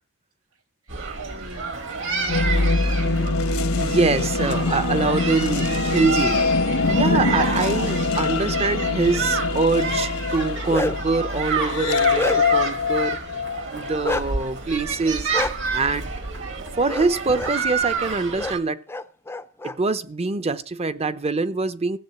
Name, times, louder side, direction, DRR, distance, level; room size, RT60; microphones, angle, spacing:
voice 1, 0.8-3.2, right 2 dB, 90° right, 2.1 m, -41 dB
sound 1, 0.9-18.6, right 5 dB, 65° right, 2.2 m, -30 dB
sound 2, 2.2-14.1, left 3 dB, 75° left, 1.1 m, -23 dB
voice 2, 3.8-6.6 6.9-13.2 13.7-15.3 15.7-16.1 16.7-18.8 19.6-22.0, right 3 dB, 30° right, 0.7 m, -24 dB
Bark, 10.4-11.2 11.7-12.7 14.0-14.3 15.3-15.5 16.9-17.1 17.3-17.5 18.4-18.5 18.9-19.7, left 2 dB, 10° left, 0.5 m, -27 dB
15.0 x 7.5 x 7.8 m
head